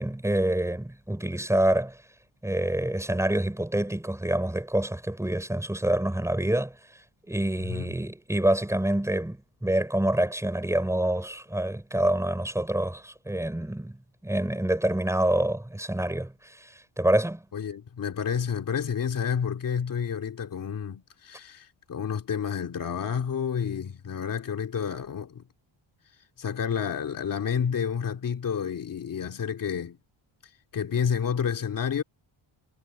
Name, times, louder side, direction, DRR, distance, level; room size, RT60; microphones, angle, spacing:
voice 1, 0.0-2.0 2.4-6.7 7.3-14.0 14.2-16.7 17.0-17.4, right 1 dB, 5° right, 5.8 m, -26 dB
voice 2, 7.6-7.9 17.5-25.5 26.4-30.0 30.7-32.0, left 7 dB, 40° left, 2.6 m, -30 dB
wide cardioid pair, 175°, 49 cm